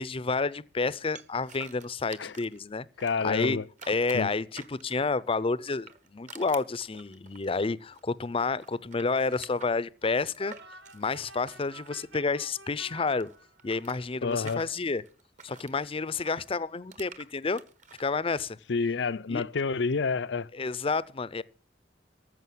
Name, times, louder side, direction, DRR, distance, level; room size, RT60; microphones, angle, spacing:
voice 1, 0.0-2.9 3.2-3.6 3.9-10.5 10.9-13.3 13.6-15.0 15.4-17.6 18.0-18.6 19.3-19.4 20.5-21.4, left 4 dB, 30° left, 0.6 m, -30 dB
sound 1, 1.2-2.6 3.0-5.1 5.6-8.1 8.4-12.6 12.8-15.7 16.2-18.1, right 5 dB, 45° right, 1.4 m, -49 dB
voice 2, 3.0-3.7 4.1-4.3 14.2-14.6 18.7-20.5, left 4 dB, 75° left, 0.6 m, -28 dB
sound 2, 10.4-13.9, right 3 dB, 65° right, 1.5 m, -50 dB
14.0 x 6.3 x 9.3 m
head